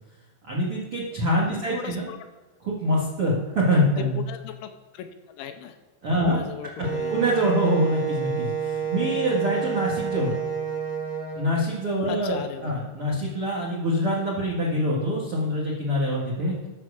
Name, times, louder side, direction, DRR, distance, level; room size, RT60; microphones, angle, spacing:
voice 1, 0.5-2.1 2.6-4.2 6.0-6.4 7.1-10.4 11.3-16.5, equal, 75° right, -4 dB, 1.2 m, -25 dB
voice 2, 1.5-2.2 4.0-5.8 6.2-7.1 12.1-12.7, left 8 dB, 85° left, 7 dB, 3.1 m, -37 dB
Wind instrument woodwind instrument, 6.8-11.4, right 6 dB, 40° left, 1.0 m, -29 dB
10.5 x 6.7 x 6.8 m, 1.3 s
omnidirectional pair, 5.7 m